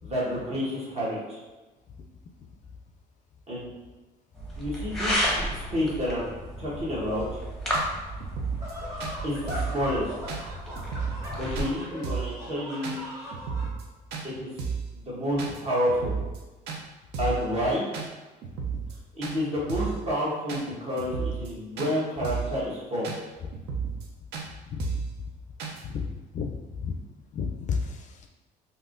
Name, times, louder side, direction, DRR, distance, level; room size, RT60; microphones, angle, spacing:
voice 1, 0.0-1.4 3.5-3.7 4.6-6.3 6.6-7.2 9.2-10.1 11.4-13.0 14.4-14.5 14.9-16.1 17.2-17.9 19.1-23.1, equal, 40° right, -6 dB, 1.3 m, -29 dB
sound 1, 4.4-11.6, equal, ahead, 0.8 m, -33 dB
sound 2, 7.2-7.3 7.7-7.9 8.2-8.7 9.0-9.1 9.5-9.8 10.3-10.4 10.8-11.3 11.5-11.7 12.0-12.3 12.8-13.0 13.3-13.8 14.1-14.3 14.6-14.9 15.4-15.6 15.9-16.4 16.7-16.8 17.1-17.4 17.9-18.1 18.4-18.9 19.2-19.4 19.7-20.0 20.5-20.6 21.0-21.5 21.8-21.9 22.2-22.6 23.0-23.2 23.5-24.1 24.3-24.5 24.8-25.1 25.6-25.8, right 5 dB, 80° right, 0.5 m, -32 dB
sound 3, 8.6-13.7, left 1 dB, 15° right, 1.1 m, -39 dB
voice 2, 24.7-25.0 25.8-26.1 26.3-27.0 27.3-28.3, left 5 dB, 45° left, 3 dB, 0.4 m, -32 dB
3.5 x 2.6 x 2.5 m, 1.2 s
cardioid pair, 110°, 17 cm